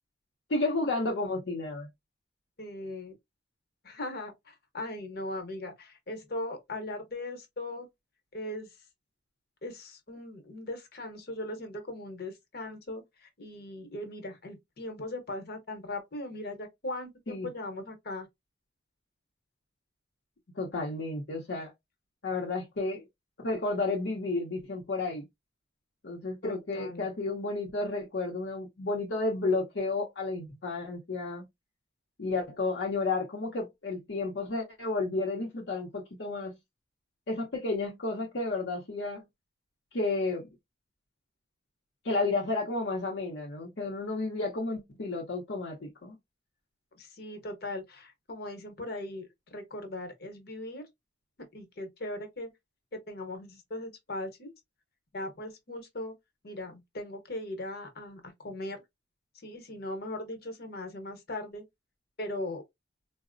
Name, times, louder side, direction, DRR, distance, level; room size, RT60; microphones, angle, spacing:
voice 1, 0.5-1.9 17.3-17.5 20.5-21.7 22.2-23.0 23.4-25.3 26.0-31.5 32.2-36.5 37.3-39.2 39.9-40.5 42.0-46.2, left 3 dB, 75° left, 0.7 m, -32 dB
voice 2, 2.6-3.1 3.8-7.9 8.3-8.7 9.6-18.3 26.4-27.1 47.0-50.8 51.5-52.5 52.9-54.5 55.1-56.1 56.4-58.8 59.4-61.6 62.2-62.6, left 1 dB, 60° left, 1.0 m, -39 dB
3.9 x 2.0 x 2.5 m
head